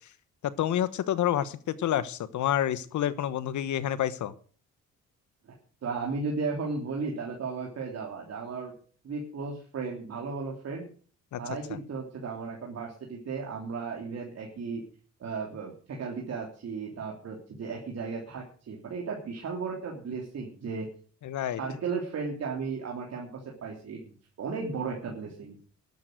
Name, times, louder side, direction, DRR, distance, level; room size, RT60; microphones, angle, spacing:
voice 1, 0.6-4.3 11.3-11.8 21.2-21.6, left 11 dB, 70° left, 16 dB, 1.2 m, -29 dB
voice 2, 5.8-8.7 9.0-10.8 11.4-14.8 15.2-20.9 21.6-24.1 24.4-25.6, right 4 dB, 55° right, -1 dB, 3.4 m, -35 dB
12.5 x 11.0 x 6.6 m, 0.43 s
cardioid pair, 90°, 30 cm